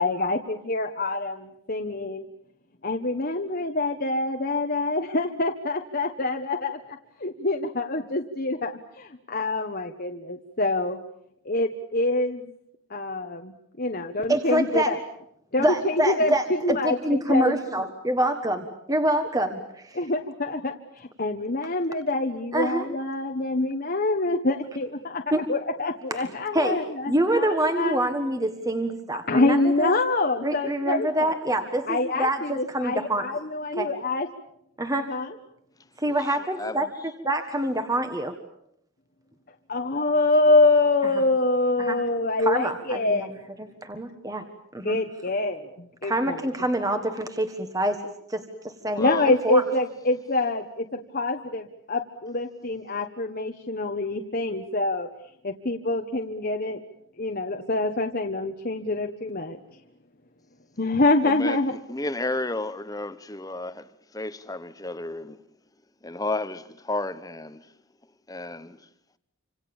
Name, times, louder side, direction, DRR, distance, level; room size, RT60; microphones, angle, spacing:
voice 1, 0.0-2.3 2.8-8.7 9.0-11.0 11.4-12.5 12.9-15.0 15.5-17.6 19.9-28.0 29.3-31.3 31.9-34.3 35.1-35.4 39.7-43.3 44.8-46.4 49.0-55.1 55.4-56.8 57.2-59.6 60.8-61.7, left 2 dB, 45° left, 1.3 m, -26 dB
voice 2, 14.3-14.9 15.6-20.0 22.5-22.9 25.3-25.4 26.5-26.8 27.1-29.9 30.4-33.3 33.8-33.9 34.8-35.1 36.0-36.9 37.2-38.4 41.8-42.0 42.4-43.3 43.6-44.4 44.7-45.0 46.0-49.6, right 1 dB, 15° right, 1.5 m, -26 dB
voice 3, 36.1-36.9 49.0-49.3 61.2-65.4 66.0-67.7 68.3-68.9, left 2 dB, 15° left, 1.0 m, -33 dB
27.5 x 26.5 x 7.2 m
head